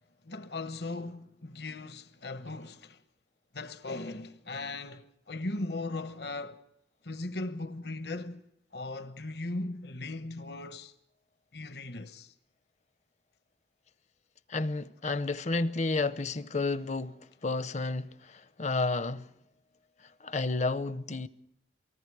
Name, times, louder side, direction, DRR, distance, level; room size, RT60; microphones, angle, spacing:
voice 1, 0.2-3.0 3.5-6.6 7.0-10.9 11.5-12.3, left 2 dB, 65° left, 1.0 m, -38 dB
voice 2, 14.5-19.3 20.0-21.3, left 3 dB, 40° left, 0.7 m, -31 dB
28.5 x 19.5 x 4.7 m
head